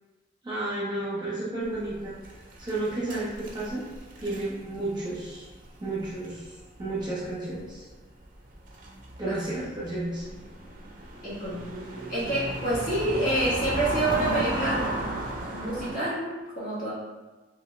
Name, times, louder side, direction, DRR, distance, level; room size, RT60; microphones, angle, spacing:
voice 1, 0.4-2.1 2.6-3.8 4.2-5.5 5.8-6.5 6.8-7.9 9.2-10.3, right 2 dB, 25° right, -8 dB, 0.9 m, -32 dB
sound 1, 1.7-7.3 7.5-7.7 8.4-15.9, right 1 dB, 50° right, 0.4 m, -35 dB
voice 2, 11.2-11.7 12.1-14.9 15.5-16.9, right 1 dB, 45° left, -9 dB, 1.2 m, -28 dB
2.9 x 2.6 x 3.1 m, 1.2 s
head